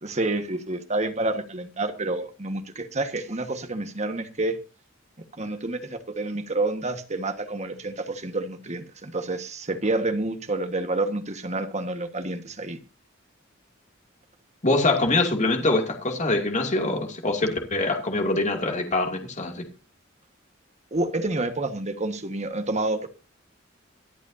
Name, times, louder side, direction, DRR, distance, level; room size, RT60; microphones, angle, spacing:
voice 1, 0.0-4.6 5.4-12.8 20.9-23.1, right 2 dB, 35° right, 1.5 m, -28 dB
voice 2, 14.6-19.7, left 2 dB, 35° left, 2.6 m, -24 dB
24.5 x 8.3 x 2.7 m
head